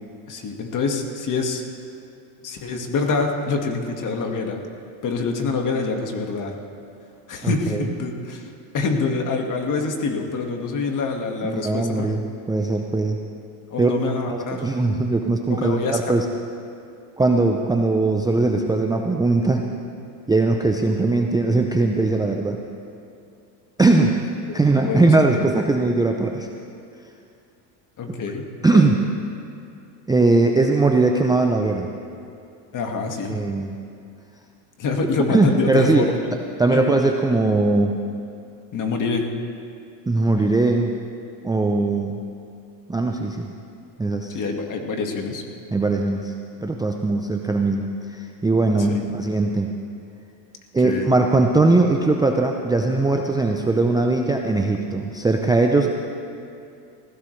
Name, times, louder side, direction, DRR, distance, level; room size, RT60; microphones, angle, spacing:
voice 1, 0.3-1.6 2.4-4.6 5.0-6.6 7.3-12.2 13.7-14.6 15.5-16.0 24.5-25.5 28.0-28.5 28.7-28.8 32.7-33.4 34.8-36.1 36.7-36.8 38.7-39.3 44.3-45.4 48.8-49.0 50.8-51.1, left 4 dB, 40° left, 3 dB, 1.9 m, -26 dB
voice 2, 7.4-7.8 11.4-13.2 13.8-13.9 14.3-16.2 17.2-19.7 20.3-22.6 23.8-24.1 24.5-26.5 28.6-28.9 30.1-31.9 33.3-33.7 35.3-36.1 36.6-38.0 40.1-40.9 41.4-42.2 42.9-43.5 44.0-44.4 45.7-46.3 46.6-49.7 50.7-55.9, right 3 dB, 10° right, 2 dB, 0.6 m, -20 dB
19.0 x 16.0 x 3.3 m, 2.5 s
supercardioid pair, 105°, 48 cm